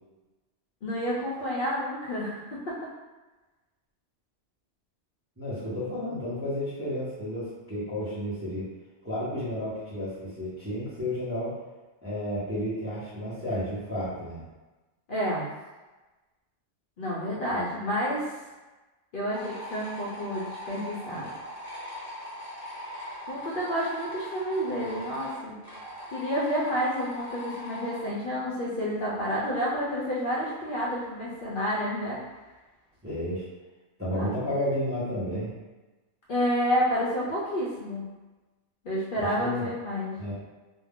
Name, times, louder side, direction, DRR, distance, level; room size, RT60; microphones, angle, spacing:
voice 1, 0.8-2.8 15.1-15.5 17.0-18.3 19.1-21.3 23.3-25.6 26.1-32.2 34.1-34.3 36.3-38.0 38.8-40.1, equal, 55° left, -6 dB, 0.7 m, -29 dB
voice 2, 5.4-8.7 9.0-11.6 12.0-14.4 33.0-33.5 34.0-35.5 39.2-39.7 40.1-40.4, left 1 dB, 15° right, -10 dB, 0.7 m, -32 dB
sound 1, 19.3-28.0, equal, 15° left, 0.8 m, -40 dB
2.3 x 2.2 x 3.4 m, 1.2 s
omnidirectional pair, 1.2 m